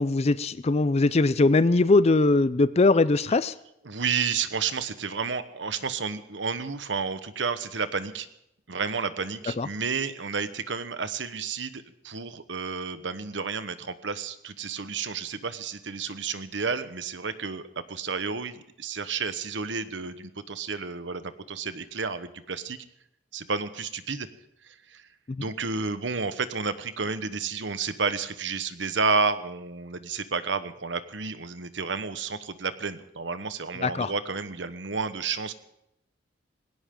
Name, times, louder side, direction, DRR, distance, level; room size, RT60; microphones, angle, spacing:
voice 1, 0.0-3.5 9.6-9.7 25.3-25.4 33.8-34.1, left 3 dB, 35° left, 16 dB, 0.5 m, -21 dB
voice 2, 3.8-8.3 8.7-22.8 23.3-24.3 24.9-25.0 25.4-35.5, right 5 dB, 90° right, 12 dB, 1.2 m, -31 dB
19.5 x 17.5 x 3.8 m, 0.82 s
head